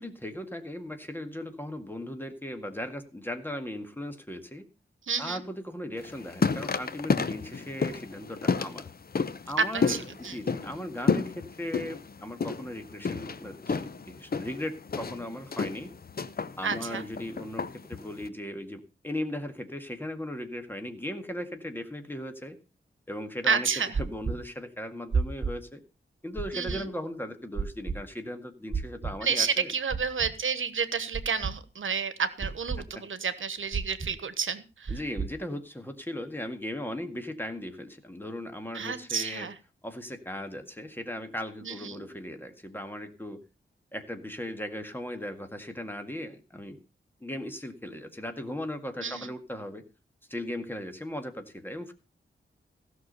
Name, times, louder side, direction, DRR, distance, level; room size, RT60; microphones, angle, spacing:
voice 1, 0.0-4.6 5.2-8.9 9.5-15.9 16.6-22.6 23.1-25.8 26.2-29.7 32.8-33.0 34.9-39.5 39.8-43.4 43.9-46.8 47.2-49.8 50.3-51.9, left 1 dB, 10° left, 6 dB, 1.9 m, -37 dB
voice 2, 5.1-5.4 9.6-10.4 16.6-17.0 23.5-23.9 26.5-26.9 29.2-35.0 38.7-39.5 41.6-42.1 49.0-49.3, right 6 dB, 75° right, 13 dB, 1.2 m, -30 dB
sound 1, 6.0-18.3, left 5 dB, 50° left, 0.9 m, -31 dB
sound 2, 23.9-24.3 25.1-25.5 26.4-26.8 27.6-27.9 28.7-29.1 29.9-30.3 31.1-31.5 32.4-32.8 33.7-34.1 34.9-35.3, right 5 dB, 45° right, 2.1 m, -30 dB
16.0 x 6.3 x 6.7 m, 0.33 s
wide cardioid pair, 125°, 21 cm